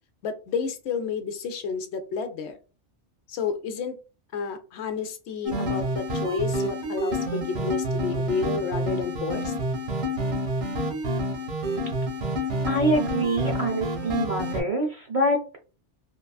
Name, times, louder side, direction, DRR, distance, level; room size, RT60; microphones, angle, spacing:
voice 1, 0.2-2.6 3.3-4.0 4.3-9.5, left 5 dB, 75° left, 8 dB, 0.8 m, -30 dB
sound 1, 5.5-14.6, equal, 70° right, 1.1 m, -28 dB
voice 2, 12.7-15.6, right 1 dB, 45° right, 1 dB, 0.5 m, -25 dB
3.0 x 2.4 x 2.3 m, 0.33 s
omnidirectional pair, 1.2 m